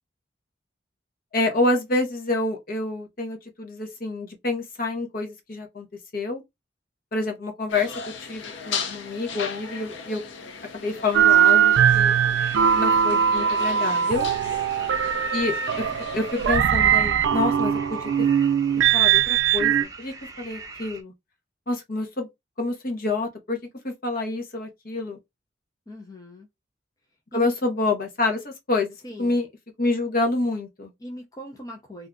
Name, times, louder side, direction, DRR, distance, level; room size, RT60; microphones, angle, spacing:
voice 1, 1.3-5.9 6.1-6.4 7.1-7.9 8.3-10.2 10.7-12.1 12.8-14.3 15.3-15.5 16.1-18.1 18.9-21.1 21.7-22.3 22.6-23.6 23.8-25.2 27.3-29.5 29.8-30.9, left 2 dB, 50° left, 0.9 m, -27 dB
sound 1, 7.7-16.6, left 5 dB, 85° left, 0.6 m, -37 dB
sound 2, 11.1-19.8, right 9 dB, 85° right, 0.4 m, -20 dB
sound 3, 12.4-21.0, right 3 dB, 20° right, 0.7 m, -42 dB
voice 2, 25.9-26.5 27.3-27.5 29.0-29.4 31.0-32.1, equal, 20° left, 0.5 m, -39 dB
2.6 x 2.3 x 3.6 m
head